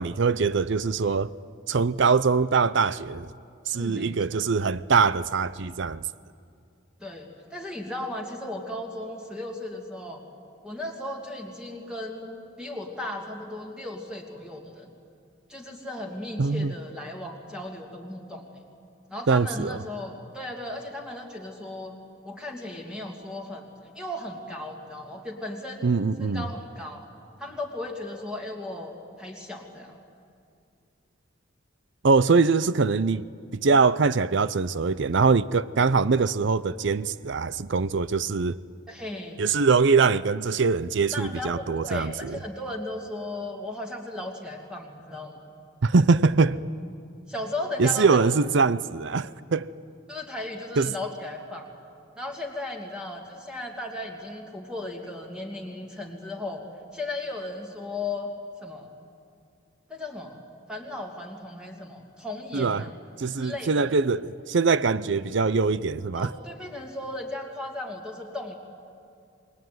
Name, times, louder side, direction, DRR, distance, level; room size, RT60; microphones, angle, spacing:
voice 1, 0.0-1.3 1.7-3.3 3.7-6.0 16.4-16.7 19.3-19.8 25.8-26.5 32.0-33.2 33.5-38.6 39.4-42.4 45.8-46.6 47.8-49.7 50.8-50.9 62.5-62.8 63.2-66.3, right 4 dB, 60° right, 0.6 m, -23 dB
voice 2, 3.7-4.5 7.0-10.2 10.6-14.9 15.5-18.5 19.1-22.0 22.2-23.7 23.9-25.9 26.2-27.0 27.4-30.0 38.9-39.4 41.1-45.5 47.3-48.2 50.1-51.7 52.2-56.6 56.9-58.3 58.6-58.9 59.9-60.4 60.7-62.9 63.3-63.9 66.1-68.5, left 2 dB, 5° right, 2.6 m, -36 dB
27.5 x 21.0 x 9.5 m
head